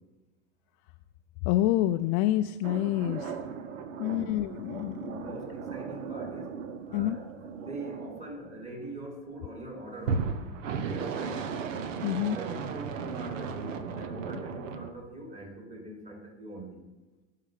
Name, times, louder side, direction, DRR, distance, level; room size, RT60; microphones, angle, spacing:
voice 1, 1.4-3.4 4.0-5.2 6.9-7.2 12.0-12.4, left 14 dB, 40° left, 8 dB, 0.4 m, -27 dB
sound 1, 2.6-9.0 10.0-14.9, right 5 dB, 90° right, 1.0 m, -36 dB
voice 2, 4.0-4.4 5.1-6.6 6.9-11.5 12.3-16.8, right 2 dB, 20° right, 2 dB, 2.5 m, -43 dB
16.5 x 5.7 x 4.9 m, 1.1 s
supercardioid pair, 130°, 37 cm